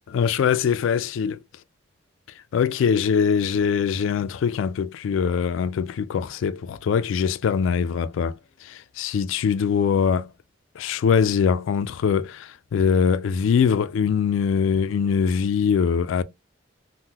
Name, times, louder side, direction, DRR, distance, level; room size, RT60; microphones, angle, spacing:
voice 1, 0.1-1.4 2.5-10.3 10.8-16.2, left 6 dB, 75° left, 0.3 m, -22 dB
3.6 x 2.1 x 2.8 m
head